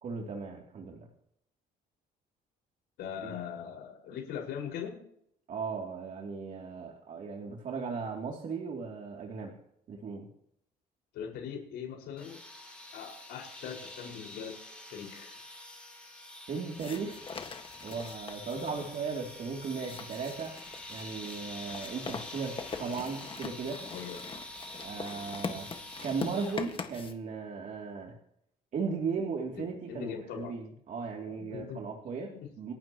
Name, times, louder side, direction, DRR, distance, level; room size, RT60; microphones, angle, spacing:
voice 1, 0.0-1.1 3.2-3.4 5.5-9.5 9.9-10.3 16.5-17.2 17.8-20.5 20.9-23.8 24.8-25.7 26.0-28.1 28.7-32.7, right 5 dB, 50° right, -1 dB, 2.8 m, -37 dB
voice 2, 3.0-5.0 11.1-12.4 12.9-14.6 14.9-15.4 18.5-18.9 23.9-24.2 29.9-30.5 31.3-31.8, left 8 dB, 80° left, 0 dB, 5.2 m, -41 dB
sound 1, 12.2-26.9, left 1 dB, 5° left, 5.3 m, -46 dB
sound 2, 16.8-27.1, left 5 dB, 30° left, 1.6 m, -43 dB
28.0 x 12.0 x 3.0 m, 0.71 s
cardioid pair, 110°, 17 cm